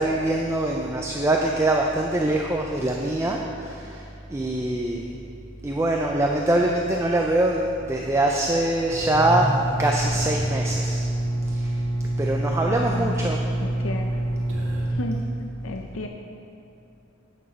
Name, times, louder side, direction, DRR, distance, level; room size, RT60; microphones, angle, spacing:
voice 1, 0.0-4.0 4.3-5.2 5.6-9.5 9.8-11.1 11.5-11.8 12.2-13.4, right 1 dB, 15° right, 0 dB, 0.4 m, -23 dB
sound 1, 8.9-14.9, right 1 dB, 85° right, 1.7 m, -26 dB
voice 2, 12.6-14.2 14.9-15.2 15.6-16.1, left 2 dB, 70° left, 3 dB, 0.5 m, -33 dB
9.4 x 6.1 x 5.3 m, 2.8 s
head